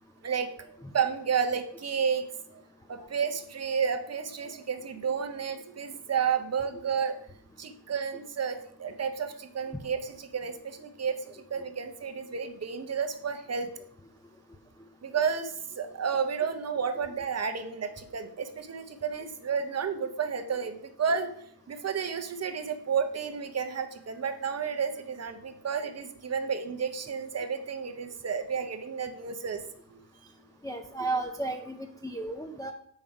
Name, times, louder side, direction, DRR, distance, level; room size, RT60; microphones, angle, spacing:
voice 1, 0.2-2.6 2.9-7.2 7.6-13.7 15.0-21.3 21.7-29.6 29.9-30.0, right 6 dB, 35° right, 7 dB, 0.7 m, -31 dB
voice 2, 30.6-32.7, right 2 dB, 10° left, 2 dB, 0.4 m, -33 dB
7.5 x 5.4 x 4.8 m, 0.69 s
wide cardioid pair, 150°, 47 cm